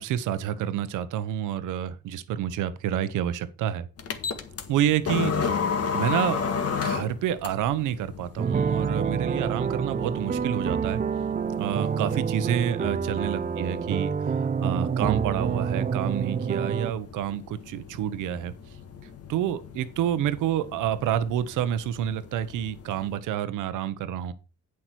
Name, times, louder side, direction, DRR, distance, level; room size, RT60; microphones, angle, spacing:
voice 1, 0.0-3.9 4.7-5.3 5.9-6.4 6.8-11.0 11.6-14.1 14.4-18.5 19.3-24.3, right 10 dB, 90° right, 1.1 m, -28 dB
sound 1, 4.0-23.2, left 6 dB, 55° left, 1.8 m, -35 dB
sound 2, 8.4-16.9, right 6 dB, 30° right, 0.6 m, -27 dB
8.7 x 7.8 x 4.6 m
cardioid pair, 90°, 30 cm